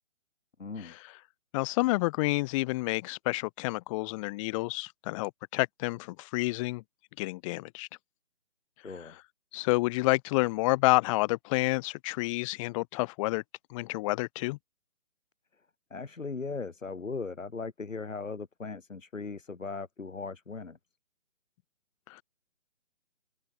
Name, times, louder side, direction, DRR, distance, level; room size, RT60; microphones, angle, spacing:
voice 1, 0.6-0.9 8.8-9.2 15.9-20.8, left 4 dB, 85° left, 5.6 m, -38 dB
voice 2, 1.5-6.8 7.2-7.9 9.5-13.4 13.7-14.6 22.1-22.2, left 22 dB, 25° left, 5.4 m, -29 dB
open air
hypercardioid pair, 150°, 38 cm